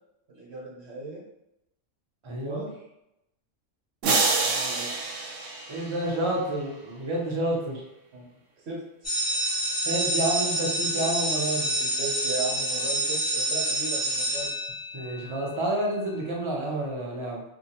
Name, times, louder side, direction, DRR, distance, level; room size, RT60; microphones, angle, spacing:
voice 1, 0.3-1.2 2.4-2.7 4.2-5.0 8.1-8.2 8.6-9.1 11.8-14.5, right 3 dB, 65° right, -4 dB, 1.0 m, -37 dB
voice 2, 2.2-2.7 5.7-7.8 9.8-11.7 14.9-17.4, right 1 dB, 40° right, -2 dB, 0.4 m, -29 dB
sound 1, 4.0-6.4, right 3 dB, 85° right, 0.9 m, -27 dB
sound 2, 9.0-15.2, right 1 dB, 25° left, 0.4 m, -27 dB
2.6 x 2.1 x 2.8 m, 0.86 s
omnidirectional pair, 1.3 m